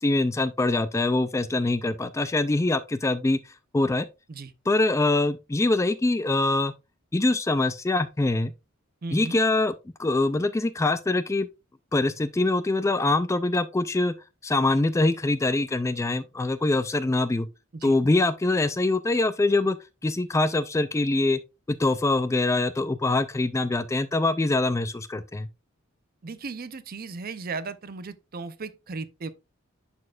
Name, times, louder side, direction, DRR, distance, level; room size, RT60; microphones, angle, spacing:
voice 1, 0.0-3.4 3.7-4.1 4.7-6.7 7.1-8.5 9.1-9.7 10.0-11.5 11.9-14.1 14.4-17.5 17.8-19.8 20.0-21.4 21.7-25.5, left 2 dB, 15° left, 0.3 m, -24 dB
voice 2, 9.0-9.4 17.7-17.9 26.2-29.3, right 4 dB, 45° right, 0.6 m, -36 dB
11.0 x 4.2 x 2.4 m
head